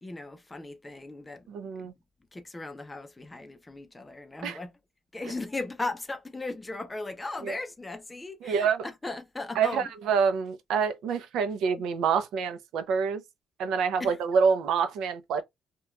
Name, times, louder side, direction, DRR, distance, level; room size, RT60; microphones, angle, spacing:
voice 1, 0.0-1.4 1.8-1.9 2.3-4.7 5.1-9.9 14.0-14.2, left 2 dB, 10° left, 0.4 m, -37 dB
voice 2, 1.5-1.9 4.4-4.6 7.4-7.6 8.4-8.9 9.5-13.2 13.6-15.4, right 6 dB, 85° right, 0.4 m, -27 dB
2.9 x 2.1 x 2.3 m
cardioid pair, 165°, 0 cm